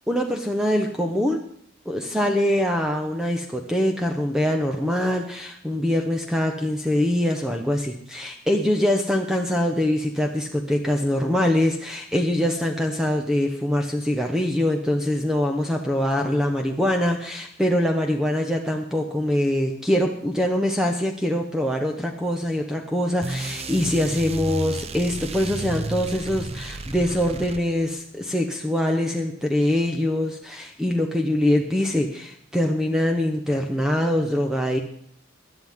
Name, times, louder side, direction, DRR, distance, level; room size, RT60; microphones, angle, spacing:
voice 1, 0.1-1.4 1.9-34.8, left 1 dB, 5° right, 3 dB, 0.9 m, -23 dB
sound 1, 23.2-28.0, right 2 dB, 30° right, 0.6 m, -33 dB
17.0 x 11.0 x 3.6 m, 0.64 s
head